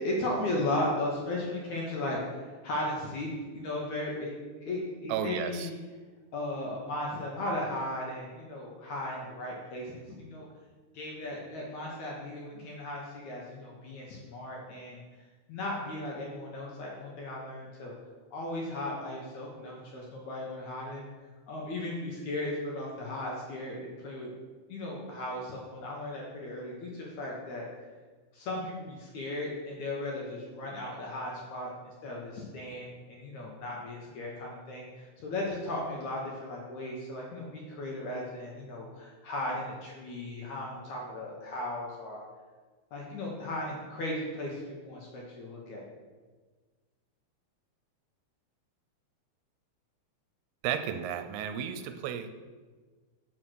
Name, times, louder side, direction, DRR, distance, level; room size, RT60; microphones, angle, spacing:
voice 1, 0.0-3.3 3.6-4.3 4.6-5.7 6.3-10.5 10.9-15.0 15.5-17.9 18.3-21.1 21.5-24.3 24.7-27.7 28.3-42.2 42.9-45.8, left 1 dB, 65° left, -2 dB, 2.1 m, -36 dB
voice 2, 5.1-5.7 50.6-52.3, right 9 dB, 80° right, 8 dB, 2.5 m, -33 dB
7.2 x 6.2 x 6.2 m, 1.4 s
omnidirectional pair, 4.6 m